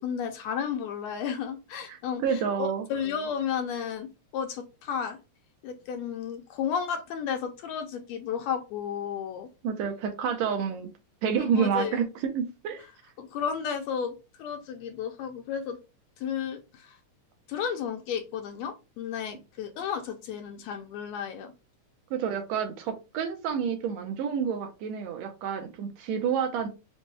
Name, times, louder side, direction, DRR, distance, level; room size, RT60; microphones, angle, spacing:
voice 1, 0.0-5.2 5.6-9.5 11.4-12.0 13.2-15.8 16.2-17.0 17.5-21.5, left 7 dB, 75° left, 5 dB, 1.7 m, -33 dB
voice 2, 1.9-2.8 9.6-10.9 11.2-12.9 22.1-26.7, right 7 dB, 80° right, 5 dB, 1.8 m, -29 dB
5.1 x 2.1 x 3.3 m, 0.29 s
omnidirectional pair, 3.3 m